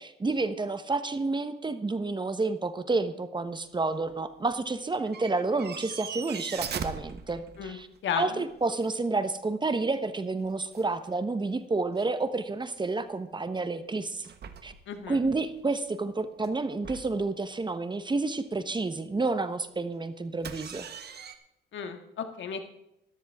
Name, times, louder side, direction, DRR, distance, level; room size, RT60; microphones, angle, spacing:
voice 1, 0.0-7.9 8.2-14.3 14.6-14.7 15.1-20.9, right 3 dB, 25° right, 11 dB, 1.1 m, -30 dB
sound 1, 4.0-4.4 4.9-8.0 8.4-9.0 10.2-10.3 10.4-11.1 11.4-11.5 12.0-12.1 14.2-15.4 16.4-16.6 16.8-17.3 20.4-21.4, right 7 dB, 55° right, 1.3 m, -40 dB
voice 2, 8.0-8.4 14.9-15.2 21.7-22.6, left 7 dB, 70° left, 7 dB, 1.8 m, -33 dB
14.0 x 13.5 x 3.7 m, 0.83 s
cardioid pair, 90°, 20 cm